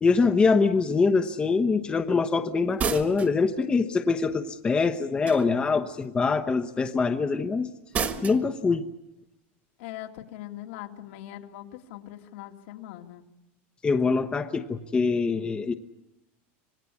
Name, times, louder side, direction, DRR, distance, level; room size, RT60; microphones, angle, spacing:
voice 1, 0.0-7.7 8.2-8.9 13.8-15.7, left 4 dB, 15° left, 8 dB, 1.0 m, -24 dB
sound 1, 2.8-3.4 5.2-5.7 7.9-8.4, right 6 dB, 25° right, 1.7 m, -30 dB
voice 2, 9.8-13.2, left 13 dB, 70° left, 4 dB, 2.4 m, -41 dB
27.0 x 19.0 x 8.5 m, 0.94 s
supercardioid pair, 150°, 7 cm